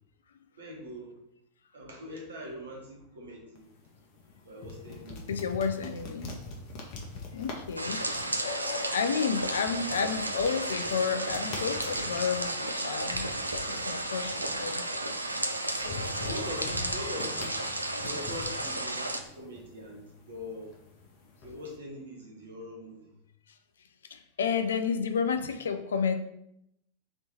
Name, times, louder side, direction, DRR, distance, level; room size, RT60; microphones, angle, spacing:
voice 1, 0.6-1.1 1.7-3.6 4.5-5.3 13.4-13.5 16.1-17.6 18.0-20.7 21.4-23.1, left 1 dB, 65° right, -1 dB, 1.2 m, -42 dB
sound 1, 3.6-21.8, left 3 dB, 40° left, 0.8 m, -45 dB
voice 2, 5.3-6.3 7.3-8.0 8.4-13.3 13.6-14.8 15.8-16.2 24.1-26.2, left 6 dB, 65° left, 8 dB, 0.4 m, -31 dB
sound 2, 7.8-19.2, right 1 dB, 85° right, 0.3 m, -33 dB
3.3 x 3.0 x 4.0 m, 0.79 s
figure-of-eight pair, 90°, 0 cm